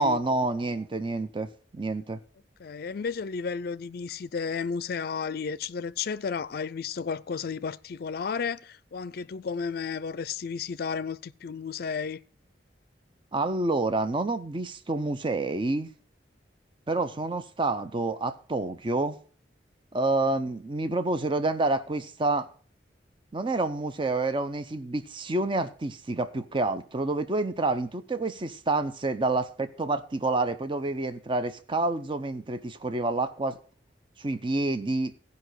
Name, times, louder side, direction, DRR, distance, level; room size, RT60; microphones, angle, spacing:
voice 1, 0.0-2.2 13.3-15.9 16.9-19.2 19.9-22.5 23.3-33.6 34.2-35.1, right 2 dB, 30° right, 0.6 m, -28 dB
voice 2, 2.6-12.2, left 5 dB, 55° left, 0.4 m, -33 dB
15.0 x 5.4 x 6.3 m
head